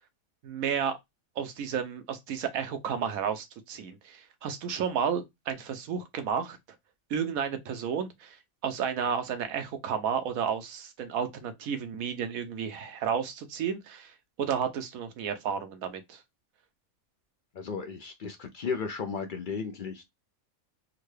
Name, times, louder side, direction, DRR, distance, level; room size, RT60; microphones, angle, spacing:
voice 1, 0.4-1.0 1.4-6.6 7.1-8.4 8.6-16.2, right 7 dB, 90° right, 1.1 m, -32 dB
voice 2, 17.5-20.0, left 5 dB, 65° left, 0.5 m, -34 dB
3.7 x 2.2 x 3.1 m
omnidirectional pair, 1.4 m